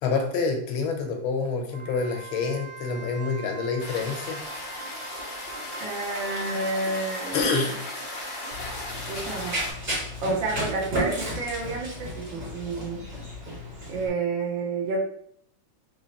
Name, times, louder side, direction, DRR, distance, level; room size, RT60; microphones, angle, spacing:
voice 1, 0.0-4.4 7.3-7.7, left 4 dB, 85° left, 3 dB, 1.5 m, -27 dB
Wind instrument woodwind instrument, 1.7-9.1, right 4 dB, 90° right, 1.5 m, -43 dB
sound 1, 3.8-9.7, left 2 dB, 65° left, 0.4 m, -36 dB
voice 2, 5.8-7.7 9.1-9.6 10.2-13.1 13.9-15.0, right 3 dB, 70° right, 0 dB, 1.5 m, -30 dB
Run, 8.5-14.1, equal, 50° right, 1.9 m, -33 dB
3.9 x 3.0 x 2.8 m, 0.66 s
omnidirectional pair, 2.2 m